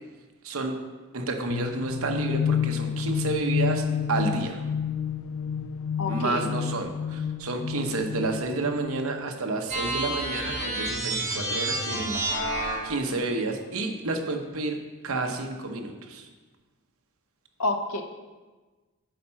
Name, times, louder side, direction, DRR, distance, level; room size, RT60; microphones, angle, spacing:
voice 1, 0.4-0.7 1.1-4.6 6.1-12.4 12.8-14.8 15.0-16.3, right 3 dB, 65° right, 4 dB, 0.9 m, -30 dB
sound 1, 1.5-9.3, left 7 dB, 60° left, 0.3 m, -30 dB
voice 2, 6.0-6.5 11.9-12.2 17.6-18.0, left 2 dB, 80° left, 5 dB, 0.9 m, -29 dB
sound 2, 9.7-13.0, right 1 dB, 30° right, 1.8 m, -29 dB
9.1 x 4.2 x 5.7 m, 1.3 s
head